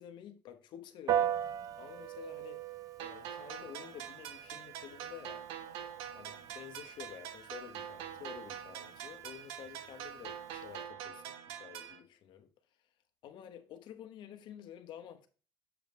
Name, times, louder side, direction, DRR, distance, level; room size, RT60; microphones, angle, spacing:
voice 1, 0.0-2.7 3.0-5.4 6.1-12.5 13.2-15.3, left 10 dB, 60° left, 1.1 m, -50 dB
Piano, 1.1-10.8, right 10 dB, 40° right, 0.5 m, -40 dB
sound 1, 3.0-12.0, right 9 dB, 90° right, 0.9 m, -45 dB
7.1 x 5.3 x 3.1 m
cardioid pair, 145°, 9 cm